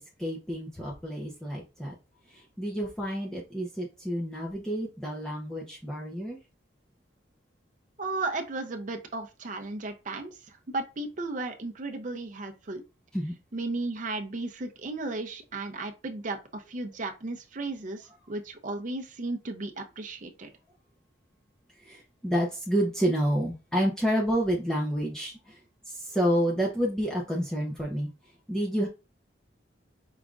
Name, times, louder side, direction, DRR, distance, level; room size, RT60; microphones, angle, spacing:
voice 1, 0.2-1.9 2.3-6.4 13.1-13.3 21.8-25.6 25.9-28.1 28.5-28.9, equal, 5° left, 0.7 m, -29 dB
voice 2, 8.0-12.8 13.5-20.5, right 2 dB, 45° right, 0.6 m, -35 dB
4.9 x 3.5 x 2.4 m
head